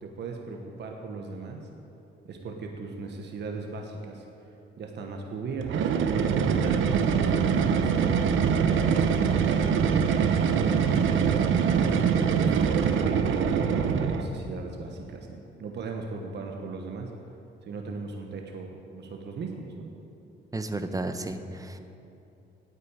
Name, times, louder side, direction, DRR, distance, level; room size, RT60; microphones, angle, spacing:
voice 1, 0.0-1.6 2.2-9.8 10.2-11.5 12.2-12.7 13.0-17.1 17.6-19.9, right 4 dB, 60° right, 2 dB, 1.2 m, -37 dB
sound 1, 5.6-14.4, right 6 dB, 75° right, 0.8 m, -24 dB
voice 2, 20.5-21.8, right 2 dB, 15° right, 8 dB, 0.9 m, -33 dB
9.5 x 8.2 x 8.8 m, 2.8 s
cardioid pair, 90°, 20 cm